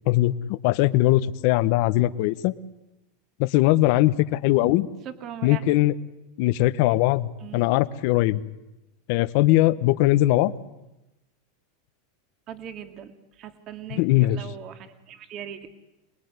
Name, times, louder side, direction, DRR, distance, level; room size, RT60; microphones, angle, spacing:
voice 1, 0.1-2.5 3.4-4.9 5.4-5.9 6.4-8.4 9.1-10.5 14.0-14.4, left 16 dB, 55° left, 15 dB, 1.2 m, -20 dB
voice 2, 5.0-5.6 7.4-7.6 12.5-15.7, right 9 dB, 35° right, 7 dB, 2.2 m, -40 dB
27.0 x 20.5 x 9.7 m, 0.98 s
supercardioid pair, 150°, 0 cm